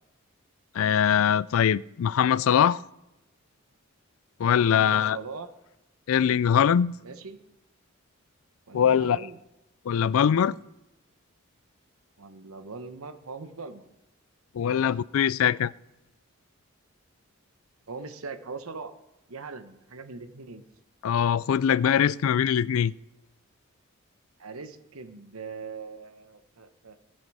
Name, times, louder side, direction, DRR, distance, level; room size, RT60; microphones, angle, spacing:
voice 1, 0.7-2.8 4.4-5.2 6.1-7.0 8.7-9.2 9.9-10.5 14.5-15.7 21.0-22.9, left 8 dB, 75° left, 0.3 m, -22 dB
voice 2, 4.6-5.5 7.0-7.4 8.7-9.4 12.2-13.8 14.7-14.9 17.9-18.9 19.3-20.6 24.4-27.0, right 4 dB, 85° right, 1.0 m, -41 dB
15.5 x 7.9 x 4.8 m
head